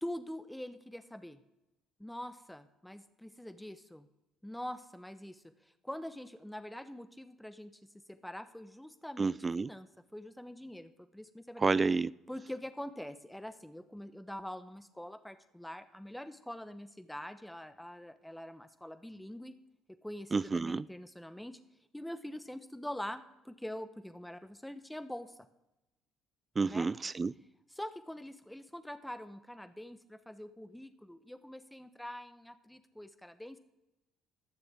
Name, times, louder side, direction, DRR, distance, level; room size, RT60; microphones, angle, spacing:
voice 1, 0.0-1.4 2.0-4.1 4.4-7.7 8.1-11.7 12.3-19.5 20.0-21.6 21.9-25.4 26.6-26.9 27.7-33.6, left 1 dB, 5° left, 1.0 m, -44 dB
voice 2, 9.2-9.7 11.6-12.1 20.3-20.8 26.6-27.3, right 4 dB, 30° right, 0.3 m, -30 dB
19.5 x 6.9 x 3.6 m
hypercardioid pair, 60°, 0 cm